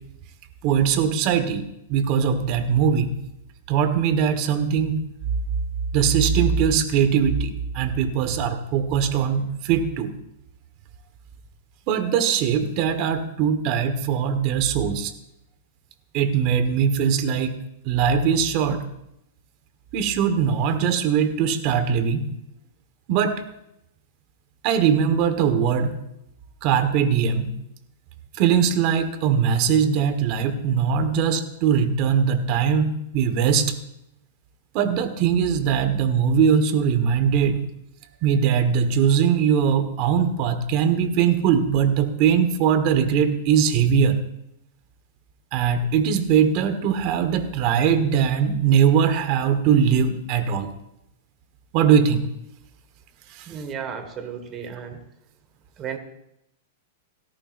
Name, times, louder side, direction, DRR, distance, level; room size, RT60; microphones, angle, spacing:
voice 1, 0.6-1.6 1.9-3.1 3.7-4.9 5.9-10.1 11.9-15.1 16.1-17.6 17.8-18.8 19.9-22.2 23.1-23.4 24.6-25.9 26.6-27.5 28.4-33.7 34.7-37.6 38.2-44.2 45.5-50.7 51.7-52.3 53.4-53.5, right 7 dB, 45° right, 9 dB, 1.4 m, -21 dB
voice 2, 53.5-55.0 55.8-56.0, right 7 dB, 25° right, 7 dB, 1.6 m, -33 dB
17.5 x 13.5 x 2.6 m, 0.82 s
hypercardioid pair, 145°, 0 cm